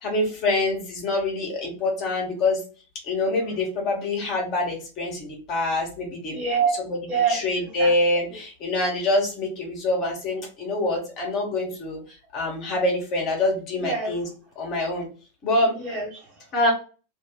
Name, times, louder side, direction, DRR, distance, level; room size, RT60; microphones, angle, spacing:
voice 1, 0.0-2.6 3.0-6.4 7.3-14.3 14.6-15.1 15.4-15.7 16.5-16.7, left 2 dB, 40° left, -1 dB, 1.3 m, -25 dB
voice 2, 6.3-6.7 7.1-7.9 8.2-8.4 13.8-14.2 15.7-16.5, right 5 dB, 40° right, -1 dB, 1.6 m, -26 dB
2.7 x 2.5 x 3.8 m, 0.36 s
figure-of-eight pair, 90°, 0 cm